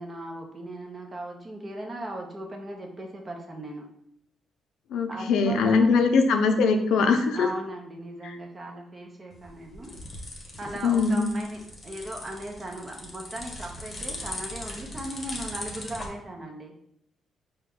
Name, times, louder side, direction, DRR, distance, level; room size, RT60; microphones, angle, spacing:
voice 1, 0.0-3.8 5.1-6.2 7.3-9.9 10.6-16.7, right 1 dB, 30° right, 1 dB, 0.9 m, -38 dB
voice 2, 4.9-7.5 10.8-11.3, left 4 dB, 80° left, 5 dB, 0.5 m, -21 dB
sound 1, 9.3-16.1, left 1 dB, 30° left, 0.9 m, -39 dB
4.7 x 2.2 x 3.6 m, 0.72 s
cardioid pair, 90°, 0 cm